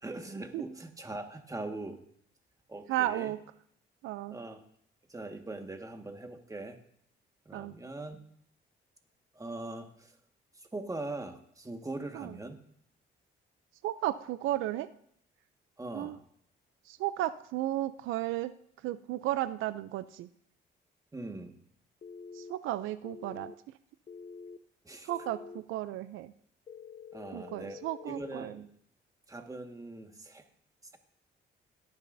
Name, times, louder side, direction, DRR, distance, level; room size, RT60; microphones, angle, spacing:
voice 1, 0.0-2.0 2.7-3.3 4.3-4.6 5.1-6.8 7.4-8.2 9.3-10.1 10.7-12.6 15.8-16.2 21.1-21.6 24.8-25.1 27.1-28.6 29.3-30.4, right 2 dB, 15° right, 5 dB, 1.7 m, -41 dB
voice 2, 2.9-3.4 4.0-4.4 7.5-7.7 12.1-12.4 13.8-14.9 15.9-16.2 16.9-18.5 18.8-20.3 22.3-23.5 25.0-26.3 27.3-28.6, right 14 dB, 90° right, 14 dB, 0.5 m, -34 dB
sound 1, 22.0-22.5 23.0-23.5 24.1-24.6 25.1-25.6 26.7-28.4, left 5 dB, 35° left, 0.6 m, -47 dB
17.5 x 9.8 x 2.7 m, 0.68 s
cardioid pair, 90°, 20 cm